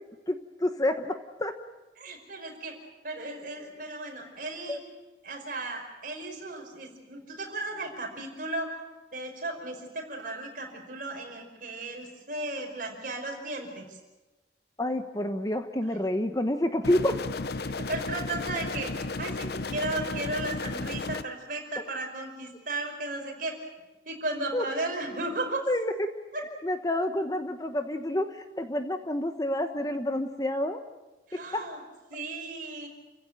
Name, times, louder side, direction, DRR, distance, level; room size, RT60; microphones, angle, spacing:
voice 1, 0.3-1.5 4.7-4.8 14.8-17.1 24.5-24.6 25.7-26.1 26.4-30.8 31.3-31.7, left 1 dB, 20° left, 7 dB, 1.1 m, -29 dB
voice 2, 2.0-2.8 3.0-4.8 5.2-8.7 9.1-14.0 17.9-18.9 19.2-23.6 24.1-25.6 26.3-26.4 31.3-31.8 32.1-32.9, right 2 dB, 45° right, 2 dB, 5.3 m, -35 dB
sound 1, 16.8-21.2, left 3 dB, 55° left, 0.8 m, -34 dB
29.5 x 16.0 x 9.0 m, 1.1 s
head